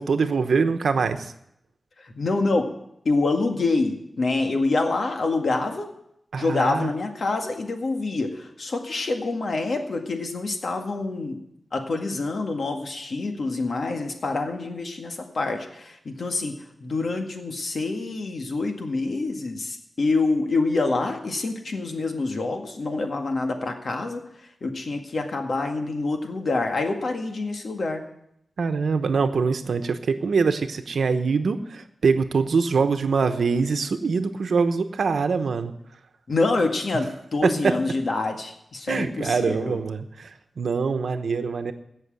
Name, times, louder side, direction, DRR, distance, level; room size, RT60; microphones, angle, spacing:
voice 1, 0.0-1.3 6.3-6.9 28.6-35.7 37.4-37.7 38.9-41.7, right 5 dB, 90° right, 8 dB, 1.0 m, -24 dB
voice 2, 2.0-2.7 3.1-5.9 6.4-11.4 11.7-24.2 24.6-28.0 36.3-39.8, left 3 dB, 65° left, 4 dB, 1.9 m, -26 dB
17.0 x 6.4 x 7.7 m, 0.77 s
wide cardioid pair, 85°, 0 cm